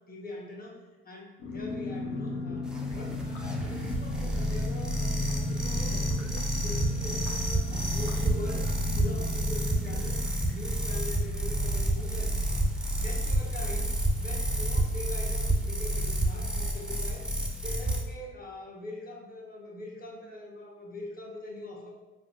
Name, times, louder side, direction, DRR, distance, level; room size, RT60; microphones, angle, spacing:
voice 1, 0.0-8.7 8.9-12.6 12.9-13.9 14.2-17.3 17.6-21.9, left 2 dB, 25° left, -3 dB, 1.0 m, -43 dB
sound 1, 1.4-13.8 14.0-14.1 14.4-14.7, left 1 dB, 80° left, 0.8 m, -35 dB
sound 2, 2.6-18.0, right 1 dB, ahead, 0.5 m, -30 dB
3.5 x 2.6 x 2.5 m, 1.1 s
hypercardioid pair, 60°, 32 cm